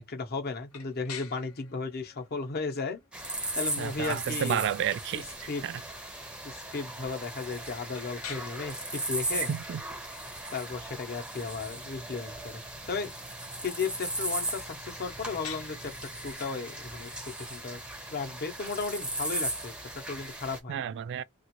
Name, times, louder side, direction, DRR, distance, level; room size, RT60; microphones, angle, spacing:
voice 1, 0.0-3.0 3.6-4.6 5.1-5.6 6.4-9.5 10.5-12.6 12.9-13.1 13.6-17.8 18.1-20.8, left 4 dB, 45° left, 0.8 m, -35 dB
sound 1, 0.7-20.5, left 8 dB, 80° left, 0.8 m, -51 dB
sound 2, 3.1-20.6, right 1 dB, 5° right, 0.6 m, -37 dB
voice 2, 3.8-5.2 5.6-5.8 9.4-9.8 20.7-21.2, right 9 dB, 55° right, 0.3 m, -31 dB
2.9 x 2.4 x 2.9 m
head